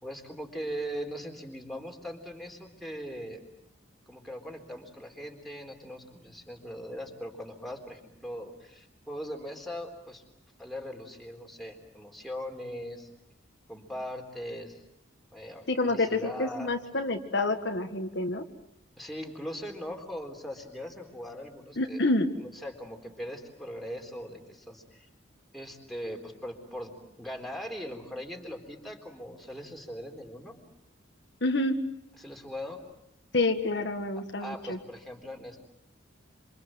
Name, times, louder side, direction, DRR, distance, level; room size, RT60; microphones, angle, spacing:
voice 1, 0.0-3.4 4.1-10.2 10.6-13.1 13.7-14.8 15.3-16.7 19.0-22.0 22.4-25.1 25.5-26.9 27.2-30.6 32.2-32.8 34.2-35.6, equal, ahead, 1 dB, 3.9 m, -40 dB
voice 2, 15.7-18.4 21.8-22.3 31.4-31.7 33.3-34.8, left 2 dB, 60° left, 5 dB, 1.7 m, -28 dB
27.5 x 27.0 x 7.8 m, 0.82 s
head